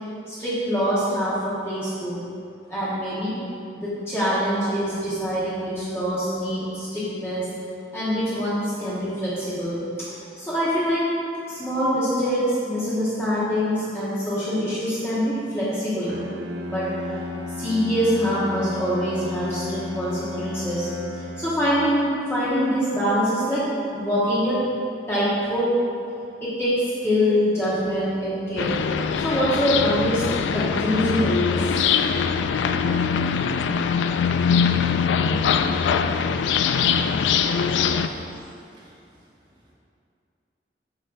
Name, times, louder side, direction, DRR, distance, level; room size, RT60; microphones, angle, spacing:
voice 1, 0.3-2.2 2.7-3.3 3.7-7.5 7.9-9.8 10.4-11.0 11.5-16.1 16.7-16.8 17.5-20.9 21.1-23.6 23.9-24.6 25.1-25.7 26.4-26.7 27.0-28.7 29.2-30.2 30.5-31.7, equal, 15° left, -11 dB, 1.2 m, -24 dB
Bowed string instrument, 16.1-21.9, left 2 dB, 80° right, 0.7 m, -34 dB
sound 1, 28.6-38.1, left 6 dB, 85° left, 0.3 m, -22 dB
voice 2, 37.4-39.0, equal, 25° right, -6 dB, 0.9 m, -42 dB
7.8 x 6.3 x 2.6 m, 2.5 s
head